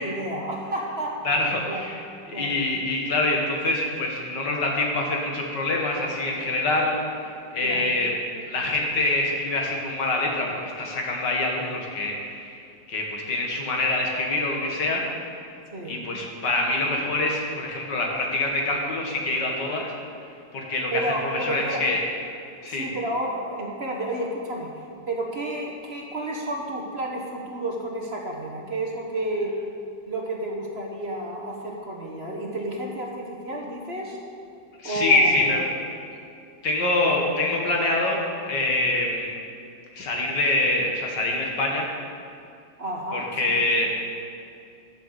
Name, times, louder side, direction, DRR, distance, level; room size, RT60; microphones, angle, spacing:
voice 1, 0.0-1.1 1.7-1.8 2.3-2.6 7.6-7.8 15.7-16.0 20.9-21.8 22.7-29.5 30.1-34.2 34.8-35.3 35.7-35.8 42.8-43.2, right 1 dB, 35° right, -1 dB, 1.5 m, -31 dB
voice 2, 1.2-8.1 8.5-12.6 12.9-15.0 15.9-19.9 20.5-22.0 22.6-22.9 34.8-35.6 36.6-39.3 39.9-41.9 43.1-43.9, left 2 dB, 70° left, 0 dB, 2.4 m, -25 dB
12.5 x 6.8 x 8.1 m, 2.5 s
omnidirectional pair, 2.0 m